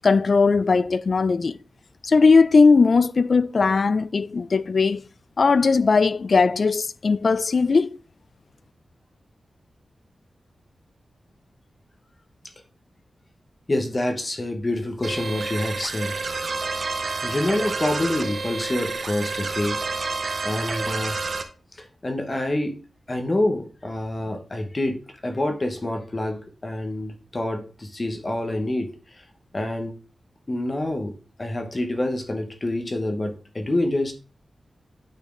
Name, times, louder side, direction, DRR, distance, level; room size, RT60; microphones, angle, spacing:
voice 1, 0.0-1.5 2.0-5.0 5.4-7.9, left 4 dB, 45° left, 0.3 m, -18 dB
voice 2, 13.7-16.1 17.2-19.8 20.4-21.2 21.7-22.7 23.1-25.0 25.2-29.2 29.5-29.9 30.5-34.1, left 1 dB, 25° left, 0.9 m, -27 dB
sound 1, 15.0-21.4, right 4 dB, 50° right, 0.9 m, -29 dB
8.8 x 4.2 x 3.7 m
wide cardioid pair, 160°, 0 cm